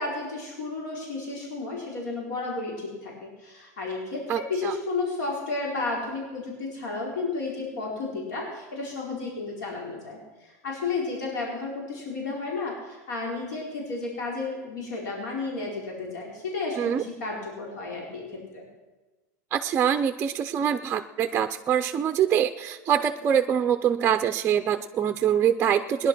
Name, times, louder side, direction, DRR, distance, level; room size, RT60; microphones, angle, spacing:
voice 1, 0.0-18.6, left 3 dB, 90° left, -2 dB, 4.3 m, -32 dB
voice 2, 4.3-4.7 16.8-17.0 19.5-26.1, right 9 dB, 25° right, 7 dB, 0.6 m, -24 dB
19.0 x 11.0 x 6.1 m, 1.2 s
supercardioid pair, 145°, 9 cm